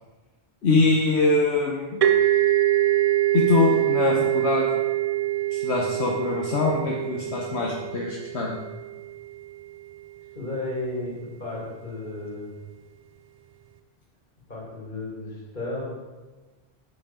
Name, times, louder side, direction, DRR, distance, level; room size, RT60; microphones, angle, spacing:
voice 1, 0.6-2.0 3.3-4.8 5.5-8.5, left 3 dB, 75° left, -2 dB, 1.3 m, -23 dB
sound 1, 2.0-9.5, right 14 dB, 45° right, 0.5 m, -24 dB
voice 2, 10.3-12.5 14.5-15.8, left 2 dB, 45° left, -5 dB, 3.0 m, -33 dB
8.7 x 8.4 x 3.8 m, 1.3 s
omnidirectional pair, 1.1 m